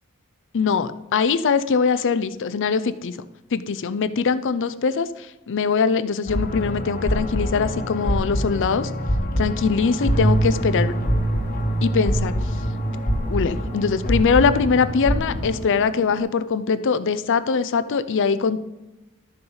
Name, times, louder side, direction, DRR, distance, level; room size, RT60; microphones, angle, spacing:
voice 1, 0.5-3.2 3.5-8.9 9.4-10.9 11.8-12.3 13.3-18.6, left 5 dB, 55° left, 13 dB, 0.5 m, -22 dB
sound 1, 6.3-15.6, equal, 40° left, 1.2 m, -24 dB
sound 2, 9.6-16.2, equal, 20° right, 2.6 m, -38 dB
12.0 x 6.8 x 4.0 m, 1.0 s
head